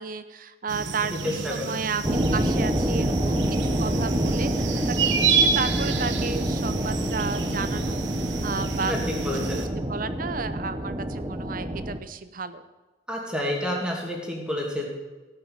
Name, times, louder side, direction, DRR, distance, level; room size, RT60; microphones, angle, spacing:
voice 1, 0.0-8.0 8.4-12.6, right 5 dB, 50° right, 12 dB, 0.7 m, -33 dB
sound 1, 0.7-9.7, right 5 dB, 85° right, 1.2 m, -29 dB
voice 2, 1.2-1.8 8.9-9.6 13.1-14.9, left 1 dB, 5° right, -1 dB, 2.5 m, -29 dB
sound 2, 2.0-12.0, right 1 dB, 20° right, 0.8 m, -27 dB
16.5 x 5.9 x 7.2 m, 1.2 s
head